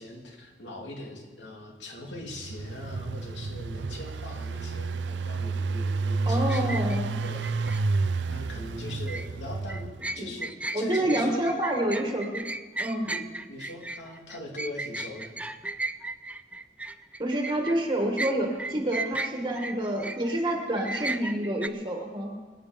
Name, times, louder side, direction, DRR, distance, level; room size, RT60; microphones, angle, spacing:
voice 1, 0.0-6.9 7.2-7.9 8.3-9.8 10.1-11.4 12.0-12.1 13.1-13.2 13.5-15.3, left 1 dB, 80° left, 0 dB, 2.8 m, -41 dB
Engine, 2.1-10.2, right 3 dB, 75° right, 0.5 m, -30 dB
voice 2, 6.2-7.1 10.2-10.3 10.7-12.4 12.8-13.1 17.2-22.3, right 1 dB, 25° right, 1 dB, 1.6 m, -28 dB
sound 1, 6.5-7.8 8.9-9.3 9.7-17.8 18.2-20.3 20.8-21.7, right 2 dB, 5° right, 0.4 m, -35 dB
25.5 x 9.0 x 5.2 m, 1.4 s
head